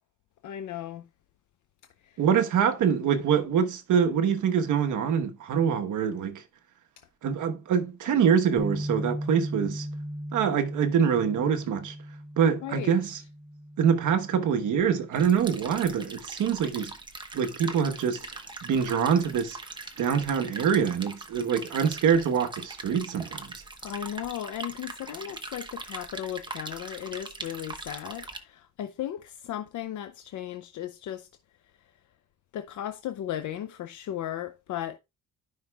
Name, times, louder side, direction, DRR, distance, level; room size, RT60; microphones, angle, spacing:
voice 1, 0.4-1.1 2.0-2.2 12.6-12.9 23.8-31.3 32.5-35.0, left 11 dB, 70° left, 0.6 m, -36 dB
voice 2, 2.2-6.4 7.2-9.9 10.3-11.9 12.4-13.2 13.8-16.9 17.3-19.6 20.0-23.5, right 7 dB, 75° right, 1.2 m, -25 dB
Bass guitar, 8.6-14.8, equal, 10° left, 2.4 m, -37 dB
sound 1, 15.1-28.4, right 3 dB, 15° right, 1.0 m, -41 dB
13.0 x 5.7 x 2.3 m
cardioid pair, 135°, 31 cm